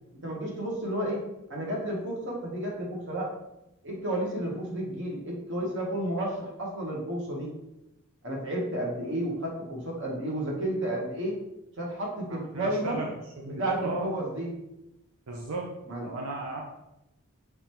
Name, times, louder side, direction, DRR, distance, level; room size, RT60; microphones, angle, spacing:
voice 1, 0.2-1.2 1.5-3.3 3.8-7.5 8.2-11.4 11.8-13.0 13.4-14.5 15.9-16.1, right 1 dB, 60° right, -3 dB, 1.3 m, -32 dB
voice 2, 12.3-13.1 13.4-14.1 15.3-15.7 16.0-16.6, right 2 dB, 90° right, 0 dB, 0.6 m, -35 dB
5.2 x 3.3 x 3.0 m, 0.89 s
head